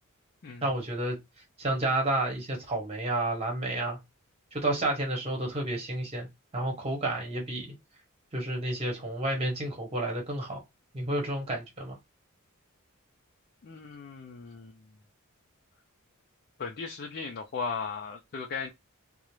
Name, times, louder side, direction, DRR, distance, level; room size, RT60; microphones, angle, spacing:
voice 1, 0.6-1.2 1.6-4.0 4.5-6.3 6.5-7.7 8.3-10.6 10.9-12.0, right 1 dB, 30° right, 1.0 m, -30 dB
voice 2, 13.6-14.9 16.6-18.7, left 5 dB, 45° left, 0.4 m, -37 dB
2.4 x 2.0 x 2.9 m
head